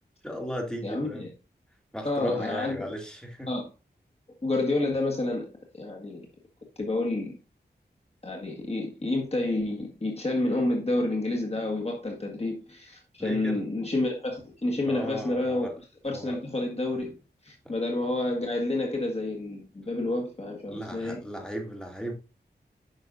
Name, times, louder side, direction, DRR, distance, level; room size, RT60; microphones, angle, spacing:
voice 1, 0.2-1.3 1.9-3.5 13.2-13.6 14.9-15.8 16.1-16.4 20.7-22.1, equal, 5° left, 2.6 m, -35 dB
voice 2, 0.8-1.3 2.0-2.9 3.5-3.7 4.4-5.5 5.7-6.3 6.8-7.4 8.2-15.7 16.0-17.2 17.4-21.2, left 2 dB, 35° left, 1.7 m, -29 dB
9.4 x 6.2 x 2.6 m
wide cardioid pair, 75°, 17 cm